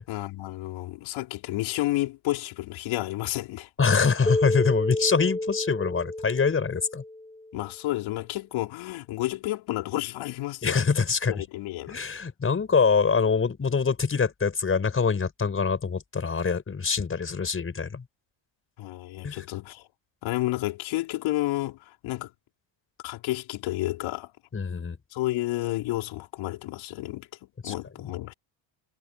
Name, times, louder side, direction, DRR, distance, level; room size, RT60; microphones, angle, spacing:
voice 1, 0.0-3.7 7.5-10.8 11.3-12.0 18.8-19.9 20.2-22.3 23.0-24.3 25.1-27.3 27.6-28.3, left 17 dB, 70° left, 4.9 m, -31 dB
voice 2, 3.8-7.0 10.6-11.4 11.9-18.0 19.2-19.4 24.5-25.0 27.6-27.7, left 5 dB, 25° left, 5.5 m, -24 dB
Keyboard (musical), 4.3-7.5, left 2 dB, 10° left, 2.2 m, -30 dB
supercardioid pair, 100°, 48 cm